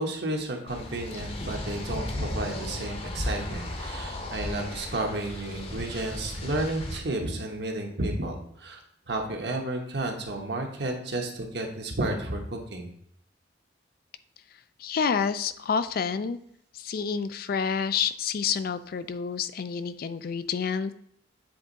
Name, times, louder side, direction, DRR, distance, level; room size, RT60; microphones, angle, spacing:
voice 1, 0.0-8.8 9.1-12.9, right 2 dB, 60° right, 2 dB, 1.2 m, -32 dB
sound 1, 0.7-7.0, left 1 dB, 30° left, 0.8 m, -35 dB
voice 2, 14.8-16.4 16.7-20.9, left 6 dB, 50° left, 13 dB, 0.3 m, -28 dB
7.8 x 3.5 x 4.0 m, 0.69 s
head